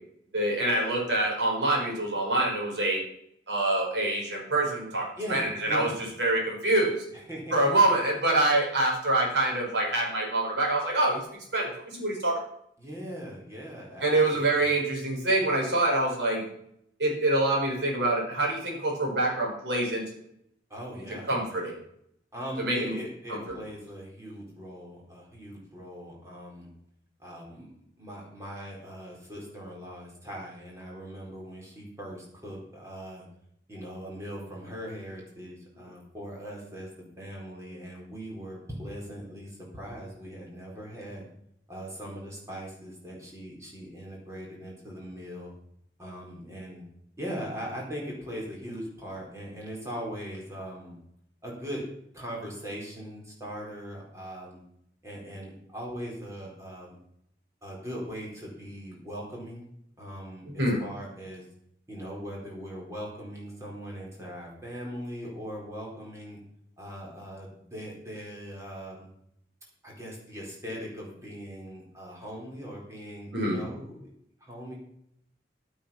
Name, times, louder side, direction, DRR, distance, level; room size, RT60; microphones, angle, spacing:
voice 1, 0.3-3.0 3.5-5.9 6.2-7.0 7.5-11.2 11.5-12.4 14.0-16.4 17.0-20.1 21.3-21.8 22.6-23.0 23.3-23.5 60.5-60.8 73.3-73.6, right 2 dB, 85° right, -1 dB, 4.9 m, -26 dB
voice 2, 5.2-6.0 7.1-7.8 12.8-14.7 20.7-21.7 22.3-26.7 27.2-27.7 28.0-33.3 33.7-36.9 37.2-41.2 41.7-45.5 46.0-46.8 47.2-50.9 51.4-51.9 52.1-54.6 55.0-57.0 57.6-59.6 60.0-61.4 61.9-66.4 66.8-69.1 69.8-74.1 74.4-74.8, equal, 15° right, -3 dB, 4.3 m, -40 dB
11.5 x 9.2 x 5.8 m, 0.72 s
head